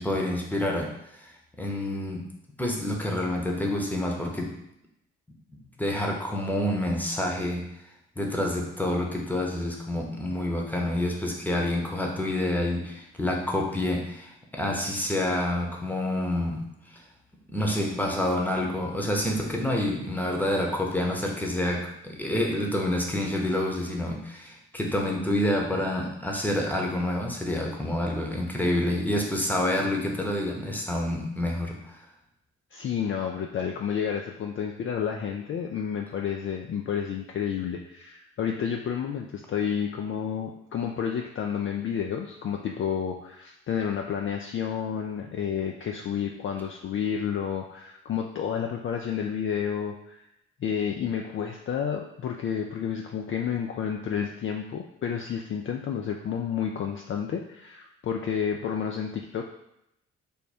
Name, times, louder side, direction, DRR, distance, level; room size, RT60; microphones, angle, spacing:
voice 1, 0.0-2.3 2.6-4.6 5.5-7.7 8.2-17.0 17.5-32.0, left 1 dB, 5° left, 0 dB, 0.9 m, -28 dB
voice 2, 32.7-50.2 50.6-59.4, left 8 dB, 40° left, 2 dB, 0.4 m, -30 dB
3.5 x 2.1 x 4.2 m, 0.82 s
hypercardioid pair, 45°, 34 cm